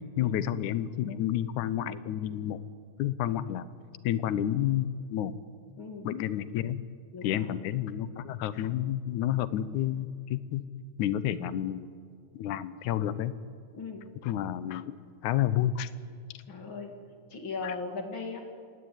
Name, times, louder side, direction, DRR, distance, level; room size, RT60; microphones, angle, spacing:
voice 1, 0.2-2.6 3.0-3.7 4.0-5.3 6.0-6.8 7.2-10.6 11.0-11.9 12.3-13.3 14.2-15.0 15.2-15.9 17.6-17.7, left 11 dB, 85° left, 15 dB, 2.3 m, -30 dB
voice 2, 5.8-6.1 7.1-7.5 13.7-14.0 16.5-16.9 17.3-18.4, left 4 dB, 45° left, 4 dB, 3.2 m, -38 dB
27.0 x 16.5 x 9.6 m, 2.2 s
omnidirectional pair, 3.4 m